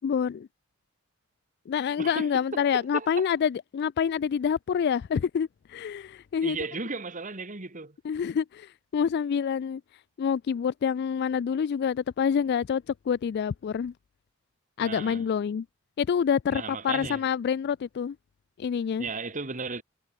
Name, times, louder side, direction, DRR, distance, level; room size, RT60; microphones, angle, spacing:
voice 1, 0.0-0.5 1.7-6.6 8.0-9.8 10.2-13.9 14.8-15.7 16.0-18.2 18.6-19.1, left 7 dB, 50° left, 0.3 m, -27 dB
voice 2, 2.0-3.3 6.4-8.0 14.8-15.2 16.5-17.2 19.0-19.8, right 4 dB, 40° right, 2.0 m, -35 dB
head